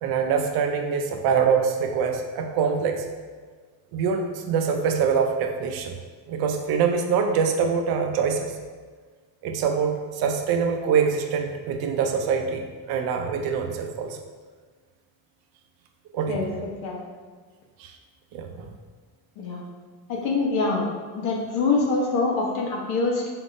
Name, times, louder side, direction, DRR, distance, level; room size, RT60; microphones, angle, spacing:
voice 1, 0.0-3.0 3.9-5.9 6.3-8.5 9.4-14.2 16.1-16.4 17.8-17.9 18.3-18.7, right 6 dB, 65° right, 4 dB, 0.6 m, -24 dB
voice 2, 20.1-20.8 21.1-23.3, left 3 dB, 70° left, -1 dB, 1.0 m, -24 dB
4.8 x 3.5 x 2.6 m, 1.5 s
cardioid pair, 180°, 39 cm